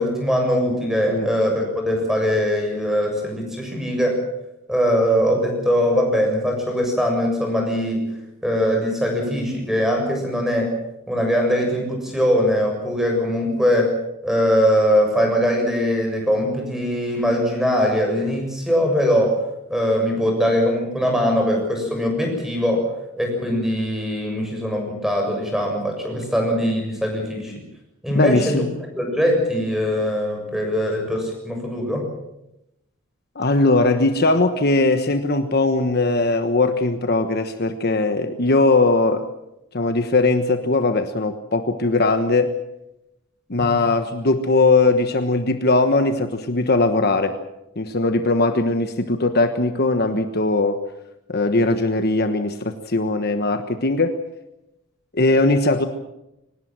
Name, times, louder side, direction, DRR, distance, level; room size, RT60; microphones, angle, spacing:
voice 1, 0.0-4.2 4.7-8.1 8.4-10.7 11.1-13.9 14.2-19.4 19.7-22.8 23.2-27.5 28.0-28.7 29.0-32.0 43.6-43.7, equal, ahead, 2 dB, 7.1 m, -21 dB
voice 2, 28.1-28.7 33.3-39.3 39.7-42.5 43.5-47.4 47.8-50.8 51.3-54.2 55.1-55.9, left 2 dB, 50° left, 8 dB, 1.3 m, -19 dB
24.0 x 19.5 x 7.5 m, 0.89 s
head